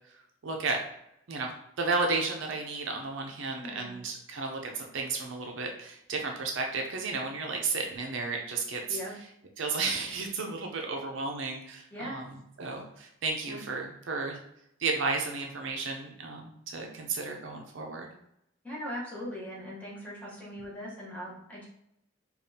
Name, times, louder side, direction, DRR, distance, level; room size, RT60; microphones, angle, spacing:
voice 1, 0.1-0.8 1.3-1.5 1.8-9.0 9.6-14.4 14.8-18.1, right 3 dB, 65° right, 2 dB, 0.5 m, -33 dB
voice 2, 3.5-3.9 8.9-9.1 11.9-12.2 13.5-13.6 18.6-21.7, equal, 5° left, -6 dB, 1.0 m, -40 dB
5.1 x 2.3 x 2.7 m, 0.79 s
head